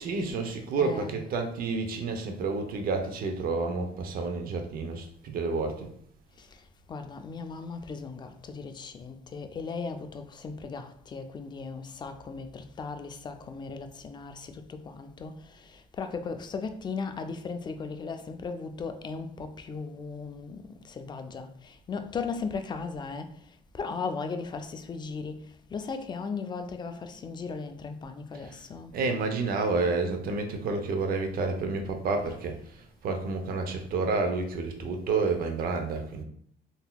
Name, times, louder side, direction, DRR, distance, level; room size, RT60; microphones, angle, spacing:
voice 1, 0.0-5.9 28.9-32.6 33.0-36.2, right 4 dB, 60° right, 0.7 m, -29 dB
voice 2, 0.8-1.2 6.4-6.5 6.9-23.3 23.7-28.9, left 4 dB, 25° left, 0.4 m, -37 dB
3.8 x 2.8 x 2.3 m
cardioid pair, 110°, 17 cm